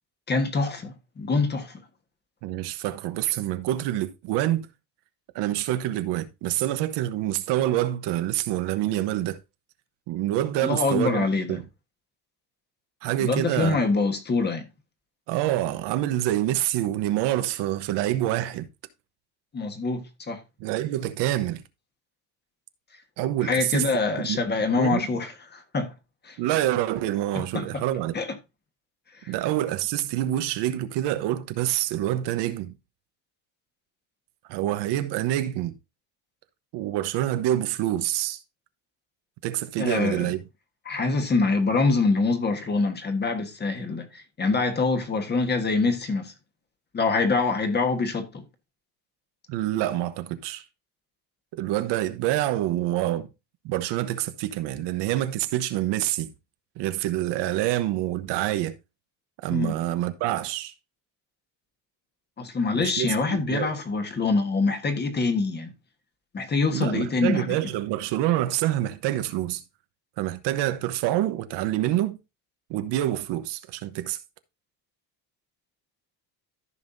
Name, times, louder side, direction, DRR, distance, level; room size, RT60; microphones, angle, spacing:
voice 1, 0.3-1.8 10.6-11.6 13.2-14.6 19.5-20.4 23.4-25.9 26.2-26.4 27.3-27.8 28.1-28.4 29.2-29.3 39.8-40.3 40.8-46.3 46.9-48.4 59.5-59.7 62.4-65.7 66.3-67.7, left 3 dB, 25° left, 1.4 m, -25 dB
voice 2, 2.4-4.7 5.3-9.4 10.1-11.6 13.0-13.8 15.3-18.7 20.6-21.6 23.2-23.9 24.2-24.4 24.8-25.1 26.4-28.1 29.3-32.7 34.5-35.7 36.7-38.4 39.4-40.4 49.5-50.6 51.5-53.3 53.6-56.3 56.8-58.7 59.4-60.7 62.8-63.7 66.7-69.6 70.2-72.2 72.7-74.2, right 14 dB, 80° right, 1.1 m, -26 dB
14.0 x 5.5 x 2.7 m
cardioid pair, 155°, 42 cm